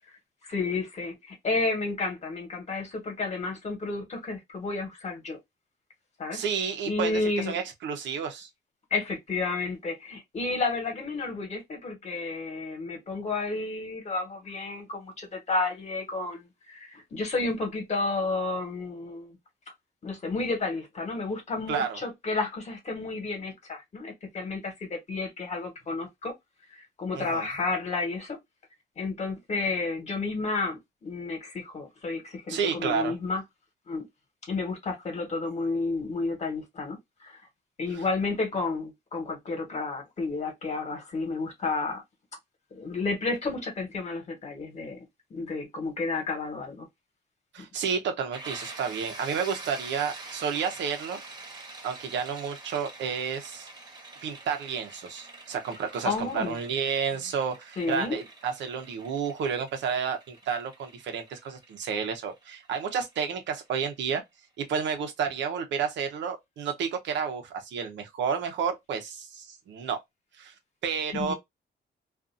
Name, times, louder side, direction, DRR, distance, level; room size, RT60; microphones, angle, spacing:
voice 1, 0.4-5.4 6.2-6.4 6.9-7.6 8.9-19.4 20.0-26.3 26.7-28.4 29.0-33.4 33.9-34.1 34.5-37.4 37.8-42.0 42.7-45.0 45.3-46.9 56.0-56.6 57.8-58.2 71.1-71.3, left 3 dB, 40° left, 1.3 m, -31 dB
voice 2, 6.3-8.5 21.7-22.0 27.1-27.5 32.5-33.1 37.9-38.0 47.5-51.2 51.8-53.7 54.2-64.2 64.6-70.0 70.4-70.5 70.8-71.3, right 6 dB, 90° right, 0.9 m, -31 dB
sound 1, 48.3-63.9, right 3 dB, 25° right, 1.1 m, -46 dB
2.5 x 2.5 x 2.5 m
cardioid pair, 135°, 18 cm